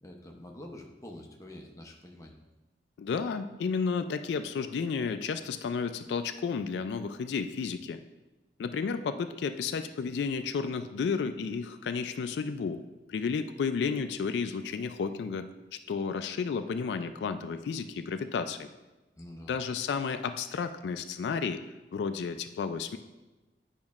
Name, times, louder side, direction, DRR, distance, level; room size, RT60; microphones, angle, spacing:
voice 1, 0.0-2.4 19.2-19.5, left 1 dB, 20° left, 1 dB, 0.6 m, -46 dB
voice 2, 3.0-8.0 8.6-12.8 13.1-15.5 15.9-18.7 19.5-21.6 21.9-23.0, left 5 dB, 75° left, 9 dB, 0.3 m, -32 dB
8.7 x 5.2 x 2.4 m, 1.1 s
head